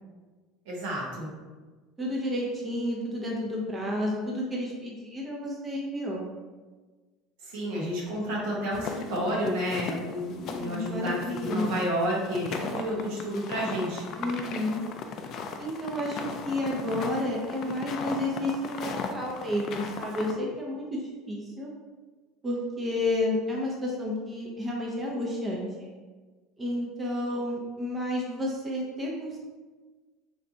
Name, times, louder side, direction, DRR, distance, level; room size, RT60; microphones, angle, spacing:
voice 1, 0.7-1.3 7.4-14.1, equal, 75° right, -4 dB, 1.1 m, -30 dB
voice 2, 2.0-6.3 10.4-11.7 14.2-14.8 15.6-16.2 16.4-21.0 21.3-21.7 22.4-25.9 26.6-29.4, left 1 dB, 20° right, -3 dB, 0.8 m, -31 dB
sound 1, 8.7-20.3, left 5 dB, 50° left, 0.4 m, -37 dB
3.4 x 2.4 x 4.0 m, 1.3 s
supercardioid pair, 95°, 0 cm